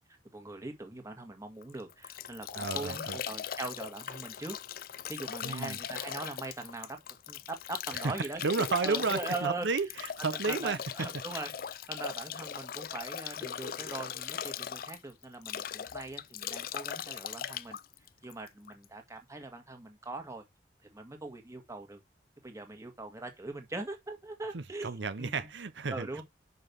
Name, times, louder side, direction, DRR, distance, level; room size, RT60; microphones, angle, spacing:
voice 1, 0.3-4.6 5.1-7.0 7.3-9.7 10.2-17.8 18.2-20.4 20.9-22.0 22.4-25.5 25.9-26.2, right 2 dB, 15° right, 1.7 m, -41 dB
Bathtub (filling or washing) / Drip / Trickle dribble, 1.6-18.8, left 9 dB, 50° left, 0.4 m, -39 dB
voice 2, 2.5-3.2 5.4-5.8 8.0-8.1 8.4-10.8 24.5-26.2, right 4 dB, 85° right, 0.8 m, -32 dB
5.9 x 5.5 x 6.9 m
head